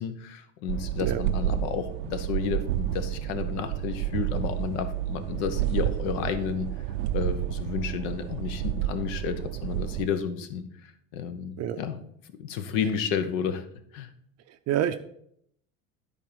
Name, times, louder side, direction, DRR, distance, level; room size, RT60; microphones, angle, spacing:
voice 1, 0.0-6.7 7.1-12.0 12.4-13.7 13.9-14.1, left 7 dB, 70° left, 10 dB, 1.1 m, -31 dB
sound 1, 0.7-10.1, right 12 dB, 85° right, 0.6 m, -30 dB
voice 2, 14.5-15.0, right 10 dB, 45° right, 10 dB, 0.5 m, -28 dB
9.9 x 4.2 x 5.2 m, 0.69 s
supercardioid pair, 120°, 38 cm